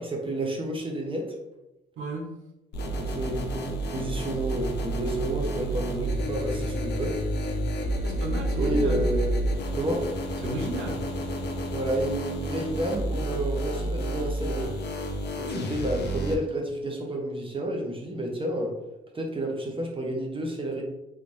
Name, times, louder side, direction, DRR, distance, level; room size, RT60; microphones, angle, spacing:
voice 1, 0.0-1.3 2.9-7.2 8.6-9.4 9.7-10.1 11.7-14.7 15.4-18.7 19.1-20.8, right 1 dB, 25° right, 0 dB, 0.7 m, -30 dB
voice 2, 2.0-2.3 8.0-9.1 10.4-11.1, right 1 dB, 80° right, -1 dB, 0.9 m, -33 dB
sound 1, 2.7-16.3, right 1 dB, 60° left, 0.6 m, -30 dB
3.3 x 2.6 x 3.1 m, 0.93 s
cardioid pair, 90°, 20 cm